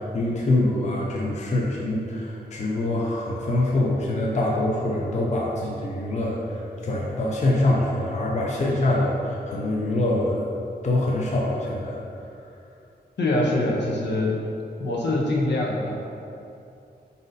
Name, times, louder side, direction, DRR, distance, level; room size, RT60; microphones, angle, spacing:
voice 1, 0.0-6.6 6.8-10.5 10.8-12.0, left 1 dB, 40° left, -3 dB, 0.5 m, -24 dB
voice 2, 13.2-14.3 14.8-15.9, left 1 dB, 80° left, -3 dB, 0.7 m, -24 dB
5.0 x 4.0 x 2.6 m, 2.6 s
wide cardioid pair, 175°, 18 cm